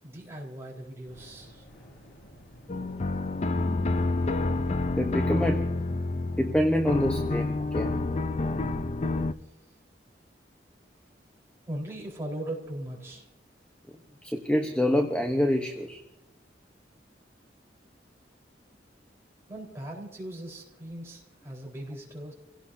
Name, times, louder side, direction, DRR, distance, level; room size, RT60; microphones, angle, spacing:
voice 1, 0.0-1.7 11.7-13.3 19.5-22.3, right 1 dB, 15° right, -3 dB, 4.1 m, -39 dB
Fire, 0.9-6.2, equal, 90° left, 5.1 m, -54 dB
sound 1, 2.7-9.3, left 2 dB, 35° left, 0.5 m, -28 dB
voice 2, 5.0-5.7 6.4-7.9 14.2-16.0, left 1 dB, 5° left, 3 dB, 0.9 m, -26 dB
29.5 x 17.0 x 2.7 m, 0.87 s
head